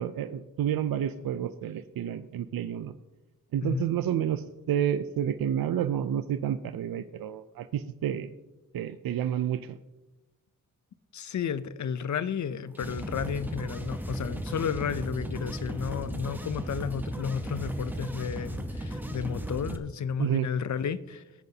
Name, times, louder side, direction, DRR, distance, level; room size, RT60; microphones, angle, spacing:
voice 1, 0.0-2.9 3.5-8.3 8.7-9.8 20.2-20.5, right 9 dB, 85° right, 0.5 m, -30 dB
voice 2, 11.1-21.2, left 7 dB, 55° left, 0.6 m, -32 dB
sound 1, 12.7-19.8, right 1 dB, 5° right, 0.9 m, -36 dB
20.0 x 9.2 x 2.8 m
wide cardioid pair, 135°, 34 cm